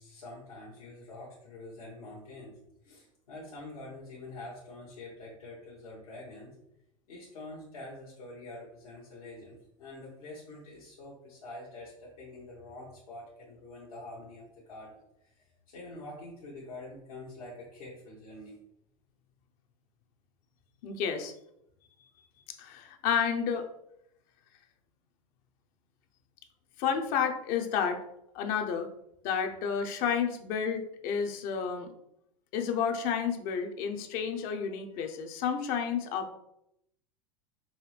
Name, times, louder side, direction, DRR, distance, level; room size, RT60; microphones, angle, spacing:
voice 1, 0.0-6.6 7.1-18.6, left 2 dB, 75° left, -6 dB, 1.3 m, -46 dB
voice 2, 20.8-21.3 22.6-23.7 26.8-28.0 28.3-28.9 29.2-31.9 32.5-36.3, left 7 dB, 50° left, 6 dB, 0.7 m, -31 dB
5.6 x 2.7 x 3.3 m, 0.79 s
hypercardioid pair, 85°, 18 cm